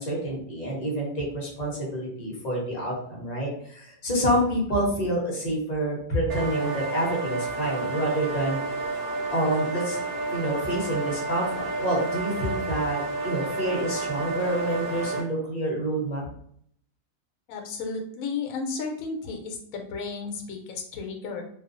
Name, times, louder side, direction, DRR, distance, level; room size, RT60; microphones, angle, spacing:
voice 1, 0.0-8.6 9.3-10.0 10.3-16.2, right 1 dB, 40° left, -4 dB, 0.7 m, -28 dB
sound 1, 6.3-15.2, right 3 dB, 60° right, 1.0 m, -30 dB
voice 2, 17.5-21.4, left 4 dB, 75° left, 3 dB, 1.0 m, -33 dB
2.4 x 2.3 x 2.4 m, 0.66 s
omnidirectional pair, 1.5 m